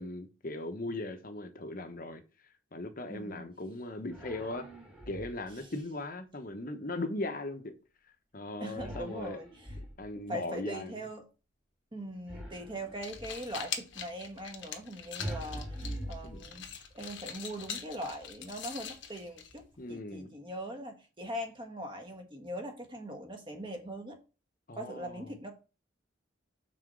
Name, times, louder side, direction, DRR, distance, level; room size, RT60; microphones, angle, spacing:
voice 1, 0.0-2.2 2.7-4.7 5.1-7.7 8.3-9.4 10.0-11.0 16.2-16.4 19.8-20.3 24.7-25.3, left 2 dB, 45° left, 1.0 m, -38 dB
voice 2, 3.1-3.5 8.6-9.7 10.1-11.2 11.9-16.7 16.9-24.2 24.7-25.5, equal, 25° right, 1.5 m, -41 dB
sound 1, 4.1-5.6 8.8-10.3 12.3-13.5 15.2-16.9, right 1 dB, 5° right, 2.0 m, -43 dB
sound 2, 12.8-19.9, left 7 dB, 70° left, 1.2 m, -43 dB
6.0 x 4.3 x 6.3 m
head